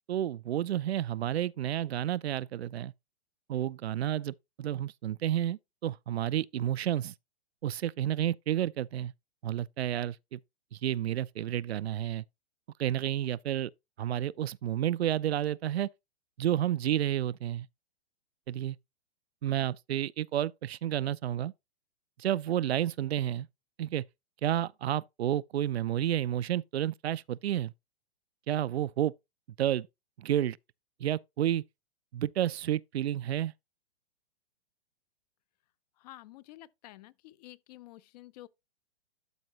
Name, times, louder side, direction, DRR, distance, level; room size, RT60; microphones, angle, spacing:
voice 1, 0.0-2.9 3.5-7.1 7.6-9.1 9.4-10.4 10.7-12.2 12.8-13.7 14.0-15.9 16.4-17.7 18.5-18.8 19.4-21.5 22.2-23.5 23.8-24.0 24.4-27.7 28.5-29.1 29.6-29.9 30.2-30.6 31.0-31.6 32.1-33.5, right 11 dB, 80° right, 0.5 m, -30 dB
voice 2, 36.0-38.5, left 16 dB, 40° left, 0.6 m, -50 dB
12.0 x 4.7 x 2.9 m
hypercardioid pair, 130°, 31 cm